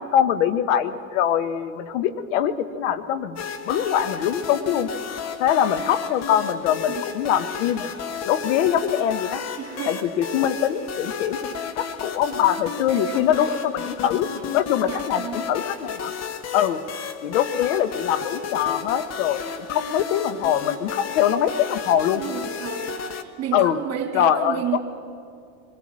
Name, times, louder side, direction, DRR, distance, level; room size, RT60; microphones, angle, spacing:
voice 1, 0.0-4.9 5.4-7.9 8.3-9.4 9.9-11.4 11.8-14.3 14.5-15.2 15.5-16.1 16.5-16.8 17.2-19.4 19.7-22.2 23.5-23.8 24.1-24.8, left 10 dB, 70° left, 11 dB, 1.3 m, -23 dB
sound 1, 3.4-23.2, left 7 dB, 40° left, 1.5 m, -33 dB
voice 2, 9.6-10.3 11.4-11.6 12.9-13.6 14.3-15.5 22.1-24.8, right 9 dB, 40° right, 3 dB, 3.2 m, -33 dB
24.0 x 19.0 x 7.6 m, 2.5 s
hypercardioid pair, 90°, 39 cm